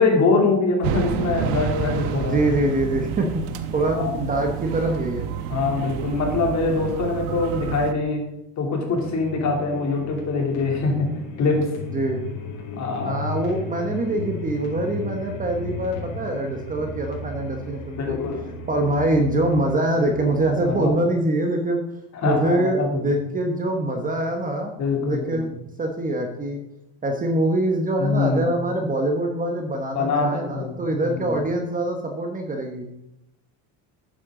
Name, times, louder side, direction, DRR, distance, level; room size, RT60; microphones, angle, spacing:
voice 1, 0.0-2.4 3.9-4.1 5.5-8.2 8.6-11.1 11.4-11.7 12.8-13.2 18.0-18.4 20.6-21.0 22.2-23.1 24.8-25.4 28.0-28.5 29.9-31.3, left 3 dB, 40° left, 1 dB, 3.0 m, -23 dB
sound 1, 0.8-7.9, right 9 dB, 75° right, 1.1 m, -29 dB
voice 2, 2.1-3.3 3.7-5.3 11.9-12.2 13.0-18.2 18.7-21.8 22.2-26.6 27.0-32.9, right 1 dB, 20° right, 3 dB, 1.0 m, -24 dB
sound 2, 9.0-20.8, left 3 dB, 85° left, 3.7 m, -35 dB
12.0 x 9.0 x 3.8 m, 0.83 s
cardioid pair, 145°, 43 cm